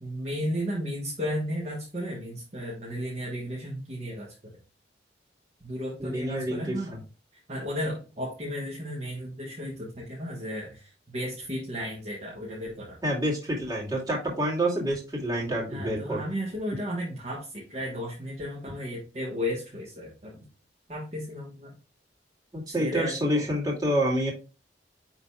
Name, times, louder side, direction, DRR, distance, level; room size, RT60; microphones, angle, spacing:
voice 1, 0.0-4.3 5.6-7.0 7.5-13.0 15.7-20.4 20.9-21.7 22.7-23.4, equal, 40° right, -3 dB, 1.4 m, -34 dB
voice 2, 6.0-6.8 13.0-16.2 22.5-24.3, equal, 20° right, -4 dB, 2.5 m, -27 dB
9.9 x 3.9 x 2.4 m, 0.32 s
head